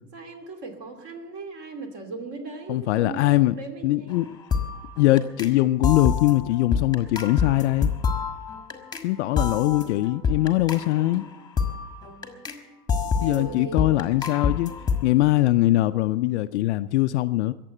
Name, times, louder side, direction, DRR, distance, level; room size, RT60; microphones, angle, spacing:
voice 1, 0.1-4.3 13.2-14.0, right 3 dB, 35° right, 2.7 m, -38 dB
voice 2, 2.7-3.6 3.8-4.4 5.0-7.9 9.0-11.2 13.2-14.7 15.0-17.5, left 16 dB, 50° left, 0.5 m, -22 dB
sound 1, 4.1-4.2 4.5-5.5 5.8-9.1 9.4-12.6 12.9-15.0, left 5 dB, 10° left, 1.4 m, -27 dB
21.0 x 7.5 x 7.8 m
hypercardioid pair, 120°, 48 cm